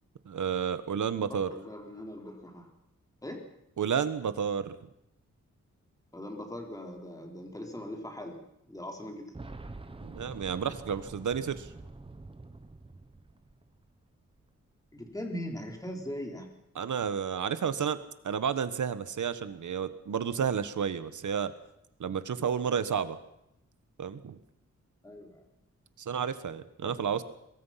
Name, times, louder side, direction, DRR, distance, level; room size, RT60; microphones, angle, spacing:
voice 1, 0.2-1.5 3.8-4.8 10.0-11.7 16.7-18.0 18.2-21.5 22.0-23.2 24.0-24.4 26.0-27.2, right 7 dB, 80° right, 13 dB, 1.4 m, -31 dB
voice 2, 1.3-2.7 3.2-3.4 6.1-9.4 14.9-16.5 25.0-25.4 26.8-27.1, left 1 dB, 10° left, 2 dB, 3.6 m, -40 dB
Boom, 9.3-14.1 14.3-14.4 15.6-15.7, right 2 dB, 20° right, 1.2 m, -46 dB
22.5 x 22.5 x 5.9 m, 0.82 s
wide cardioid pair, 170°, 30 cm